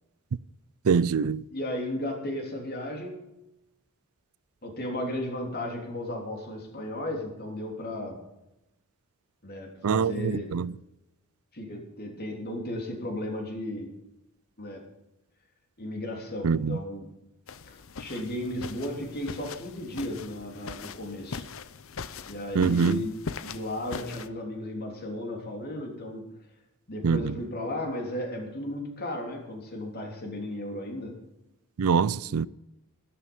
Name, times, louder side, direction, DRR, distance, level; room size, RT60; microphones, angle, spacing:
voice 1, 0.9-1.4 9.8-10.7 16.4-16.8 22.6-23.0 27.0-27.3 31.8-32.5, right 6 dB, 75° right, 0.4 m, -24 dB
voice 2, 1.5-3.3 4.6-8.2 9.4-10.6 11.5-13.9 14.6-14.9 15.8-17.1 17.6-21.5 22.2-26.3 26.9-31.2 32.3-32.5, left 1 dB, 45° left, 3.3 m, -35 dB
sound 1, 17.5-24.3, left 5 dB, 60° left, 0.7 m, -41 dB
13.0 x 12.5 x 5.4 m
head